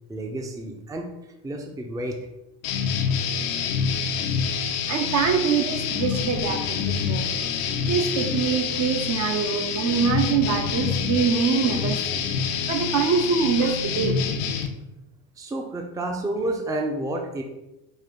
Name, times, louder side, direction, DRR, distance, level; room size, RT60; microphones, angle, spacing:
voice 1, 0.1-1.1 1.4-2.2 15.4-17.4, right 1 dB, 10° right, 2 dB, 0.5 m, -30 dB
sound 1, 2.6-14.7, left 6 dB, 85° left, 0.7 m, -27 dB
voice 2, 4.9-7.3 7.9-12.2 12.7-14.2, right 6 dB, 45° right, 5 dB, 0.7 m, -24 dB
5.4 x 2.5 x 3.7 m, 0.95 s
supercardioid pair, 95°, 37 cm